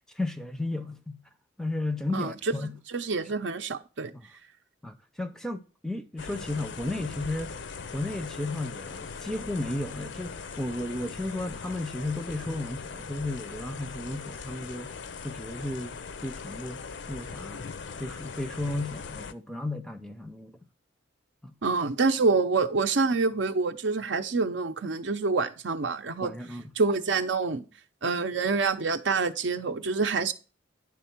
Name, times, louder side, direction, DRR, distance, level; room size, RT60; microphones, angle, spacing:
voice 1, 0.2-1.2 1.6-2.8 4.8-7.5 7.9-14.9 15.2-16.8 17.1-17.7 18.0-20.6 21.4-21.5 26.2-26.7, left 2 dB, 5° left, 0.5 m, -34 dB
voice 2, 2.9-4.1 21.6-26.3 26.8-27.6 28.0-30.3, right 4 dB, 70° right, 0.7 m, -26 dB
sound 1, 6.2-19.3, left 5 dB, 70° left, 0.5 m, -40 dB
10.0 x 3.6 x 5.8 m
head